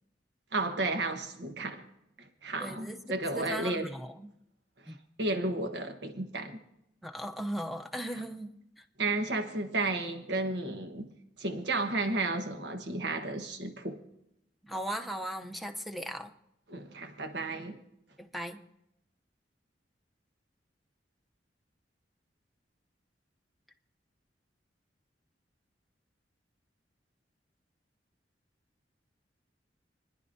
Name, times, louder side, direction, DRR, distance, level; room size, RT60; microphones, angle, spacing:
voice 1, 0.5-1.9 2.2-3.9 4.8-6.6 8.1-8.2 9.0-11.1 11.4-14.0 16.7-17.8, right 2 dB, 75° right, 1.3 m, -33 dB
voice 2, 2.6-3.0 3.3-4.3 4.9-5.0 7.0-8.8 14.6-16.3 18.2-18.6, equal, ahead, 0.7 m, -38 dB
29.0 x 10.5 x 2.7 m
head